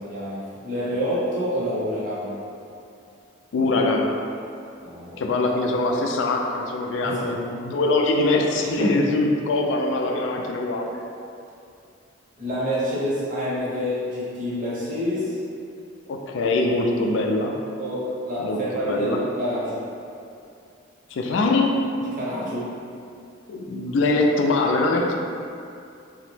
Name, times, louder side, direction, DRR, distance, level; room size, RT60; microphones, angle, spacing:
voice 1, 0.0-2.4 4.8-5.2 7.0-7.4 8.8-9.1 12.4-15.4 17.8-19.8 22.1-22.7, equal, 40° right, -9 dB, 0.8 m, -27 dB
voice 2, 3.5-4.2 5.2-10.9 16.1-17.5 18.4-19.2 21.1-21.7 23.5-25.1, left 2 dB, 70° left, 1 dB, 0.3 m, -23 dB
2.9 x 2.0 x 3.1 m, 2.5 s
head